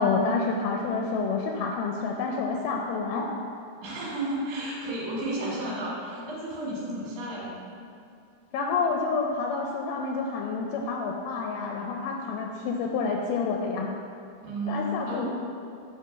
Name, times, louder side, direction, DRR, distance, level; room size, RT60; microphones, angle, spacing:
voice 1, 0.0-3.3 8.5-13.9 14.7-15.3, left 4 dB, 80° left, 1 dB, 2.0 m, -28 dB
voice 2, 3.8-7.7 14.4-15.3, right 1 dB, 75° right, -6 dB, 3.4 m, -32 dB
8.9 x 3.2 x 5.6 m, 2.5 s
omnidirectional pair, 3.9 m